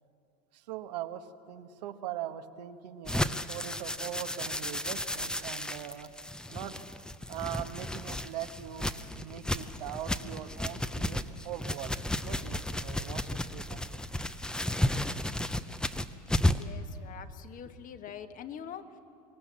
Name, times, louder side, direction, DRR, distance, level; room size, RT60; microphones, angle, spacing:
voice 1, 0.5-6.1 6.5-6.7 7.3-11.9 12.3-14.0, right 11 dB, 90° right, 8 dB, 1.2 m, -41 dB
sound 1, 3.1-16.7, left 1 dB, 5° left, 0.6 m, -33 dB
voice 2, 16.4-19.0, left 8 dB, 40° left, 9 dB, 1.3 m, -44 dB
24.0 x 18.5 x 7.4 m, 2.5 s
supercardioid pair, 115°, 20 cm